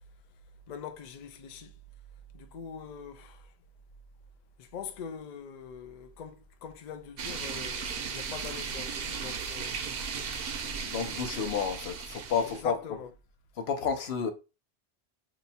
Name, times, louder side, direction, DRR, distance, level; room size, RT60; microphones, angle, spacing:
voice 1, 0.7-1.7 2.3-3.5 4.6-9.9 12.4-13.1, left 6 dB, 55° left, 0.5 m, -43 dB
sound 1, 7.2-12.6, right 6 dB, 65° right, 0.8 m, -36 dB
voice 2, 10.8-12.7 13.6-14.3, left 6 dB, 70° left, 0.9 m, -30 dB
2.8 x 2.3 x 4.0 m
omnidirectional pair, 1.1 m